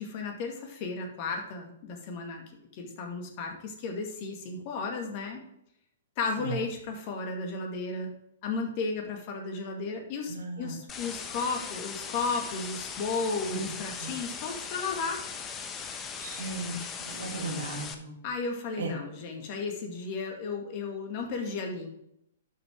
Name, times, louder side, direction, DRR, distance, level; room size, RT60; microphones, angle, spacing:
voice 1, 0.0-2.4 2.7-5.4 6.2-8.1 8.4-15.2 18.2-21.9, left 4 dB, 40° left, 2 dB, 2.1 m, -34 dB
voice 2, 10.3-10.8 13.5-13.6 14.0-14.2 16.2-18.2 18.8-18.9, right 3 dB, 70° right, 0 dB, 2.6 m, -36 dB
sound 1, 10.9-17.9, left 6 dB, 20° left, 0.9 m, -39 dB
11.5 x 5.6 x 3.7 m, 0.74 s
figure-of-eight pair, 115°, 0 cm